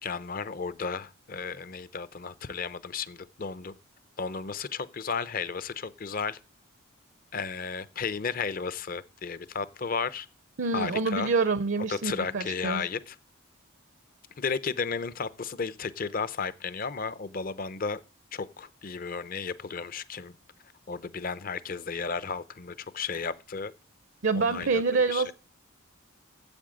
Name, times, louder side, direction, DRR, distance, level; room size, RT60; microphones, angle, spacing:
voice 1, 0.0-3.7 4.2-6.4 7.3-10.3 10.7-11.3 11.9-13.2 14.4-18.0 18.3-20.4 20.9-23.7 24.3-25.3, left 5 dB, 40° left, 0.6 m, -34 dB
voice 2, 10.6-12.9 24.2-25.3, right 4 dB, 60° right, 0.6 m, -26 dB
8.8 x 7.8 x 7.6 m
head